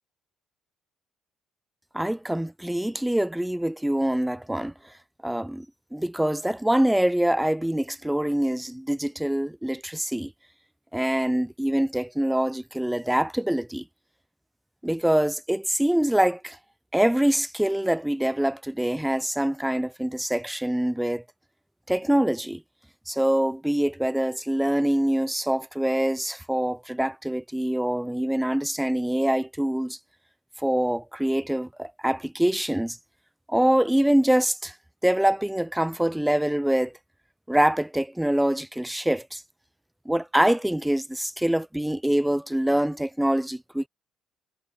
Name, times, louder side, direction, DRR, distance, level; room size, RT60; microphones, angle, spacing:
voice 1, 1.9-4.7 5.2-5.7 5.9-10.3 10.9-13.8 14.8-16.6 16.9-21.2 21.9-22.6 23.1-30.0 30.6-33.0 33.5-34.7 35.0-36.9 37.5-39.4 40.1-43.9, right 1 dB, 5° right, 0.5 m, -24 dB
hypercardioid pair, 55°, 0 cm